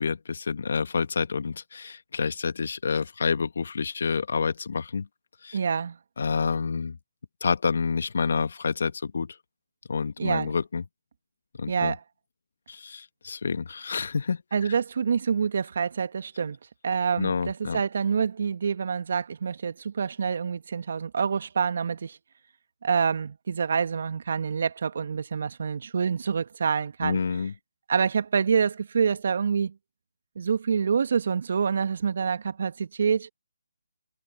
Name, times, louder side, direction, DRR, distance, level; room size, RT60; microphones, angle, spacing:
voice 1, 0.0-5.1 5.4-5.6 6.2-7.0 7.4-9.4 9.9-10.8 11.6-12.0 12.7-14.4 17.2-17.8 27.0-27.5, left 5 dB, 60° left, 1.7 m, -28 dB
voice 2, 5.5-6.0 10.2-10.5 11.7-12.0 14.5-16.6 16.8-22.2 22.8-27.2 27.9-29.7 30.4-33.3, right 6 dB, 55° right, 1.7 m, -26 dB
figure-of-eight pair, 150°, 0 cm